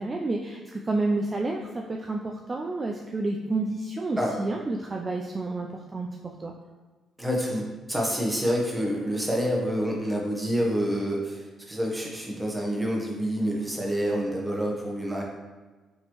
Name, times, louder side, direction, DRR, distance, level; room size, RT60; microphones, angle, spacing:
voice 1, 0.0-6.1 6.4-6.5, right 2 dB, 30° right, 0 dB, 0.3 m, -30 dB
voice 2, 7.2-15.2, equal, 10° right, -2 dB, 0.9 m, -27 dB
4.3 x 3.0 x 3.0 m, 1.3 s
cardioid pair, 90°, 0 cm